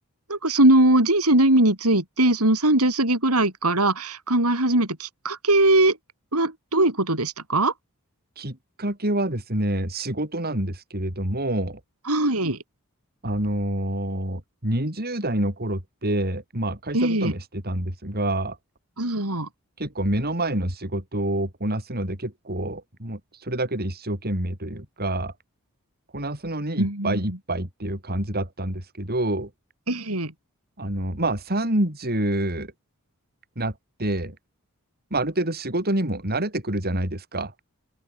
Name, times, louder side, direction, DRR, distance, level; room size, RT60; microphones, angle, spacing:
voice 1, 0.3-6.0 6.3-7.7 12.1-12.6 16.9-17.3 19.0-19.5 26.8-27.2 29.9-30.3, right 1 dB, 80° right, 6.7 m, -20 dB
voice 2, 8.4-11.8 13.2-18.6 19.8-25.3 26.1-29.5 30.8-32.7 33.6-34.4 35.1-37.5, right 1 dB, 45° right, 6.2 m, -27 dB
open air
head